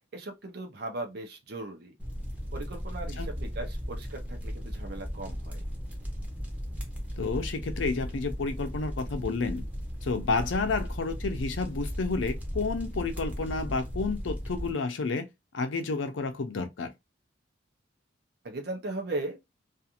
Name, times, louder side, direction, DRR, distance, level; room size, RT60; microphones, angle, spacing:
voice 1, 0.1-1.9 2.5-5.6 18.4-19.4, right 2 dB, 60° right, 0.6 m, -38 dB
sound 1, 2.0-14.7, equal, 10° right, 0.7 m, -36 dB
voice 2, 7.2-9.6 10.0-15.3 15.5-16.9, left 4 dB, 85° left, 0.5 m, -30 dB
2.5 x 2.4 x 2.7 m
head